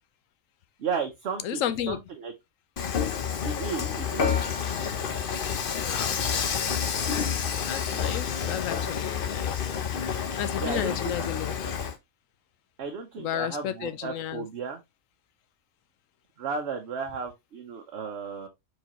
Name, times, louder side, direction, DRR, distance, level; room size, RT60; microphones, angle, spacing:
voice 1, 0.8-2.3 3.4-4.4 10.6-11.3 12.8-14.8 16.4-18.5, right 5 dB, 55° right, 1.0 m, -34 dB
voice 2, 1.4-2.0 5.7-6.2 7.6-9.7 10.0-11.5 13.2-14.5, left 11 dB, 75° left, 0.9 m, -33 dB
Dishes pots and pans / Frying (food), 2.8-11.9, left 7 dB, 50° left, 0.7 m, -29 dB
4.6 x 3.9 x 2.9 m
omnidirectional pair, 1.5 m